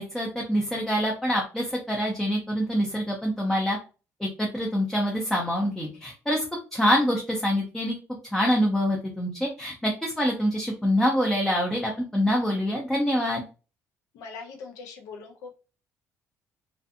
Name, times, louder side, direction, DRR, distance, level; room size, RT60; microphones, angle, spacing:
voice 1, 0.0-3.8 4.2-6.4 6.7-7.9 8.3-13.4, equal, 5° left, -1 dB, 0.5 m, -25 dB
voice 2, 14.1-15.6, left 4 dB, 80° left, 3 dB, 0.7 m, -41 dB
2.5 x 2.4 x 2.5 m, 0.34 s
cardioid pair, 155°, 6 cm